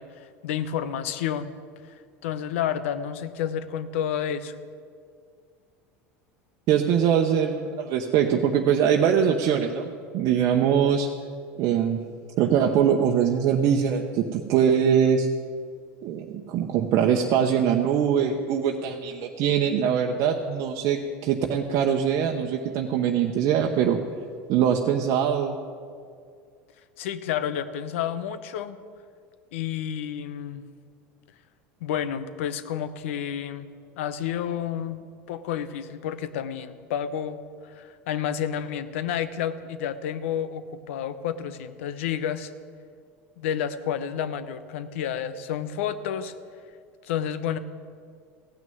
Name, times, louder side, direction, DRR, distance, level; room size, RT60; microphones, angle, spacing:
voice 1, 0.0-1.5 2.2-4.5 27.0-28.8 29.5-30.6 31.8-33.7 34.0-35.0 35.3-37.4 37.7-42.5 43.4-46.3 47.0-47.6, left 9 dB, 80° left, 13 dB, 0.8 m, -30 dB
voice 2, 6.7-11.1 11.6-12.0 12.4-15.3 16.0-24.0 24.5-25.6, right 8 dB, 55° right, 2 dB, 0.9 m, -22 dB
15.5 x 6.3 x 9.3 m, 2.2 s
supercardioid pair, 100°, 7 cm